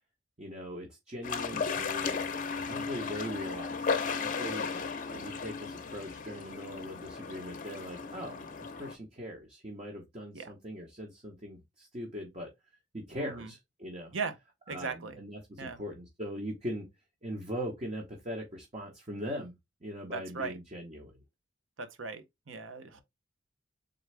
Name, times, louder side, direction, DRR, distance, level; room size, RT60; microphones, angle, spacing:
voice 1, 0.4-4.7 5.1-12.5 12.9-14.1 14.7-16.9 17.2-19.5 19.8-21.2, equal, 35° right, 1.0 m, -41 dB
sound 1, 1.2-8.9, left 5 dB, 45° left, 0.6 m, -35 dB
voice 2, 2.7-3.1 10.3-10.5 13.2-13.5 14.1-14.4 14.7-15.2 15.6-15.8 20.1-20.6 21.8-23.0, right 4 dB, 85° right, 0.7 m, -38 dB
3.8 x 3.4 x 3.3 m
head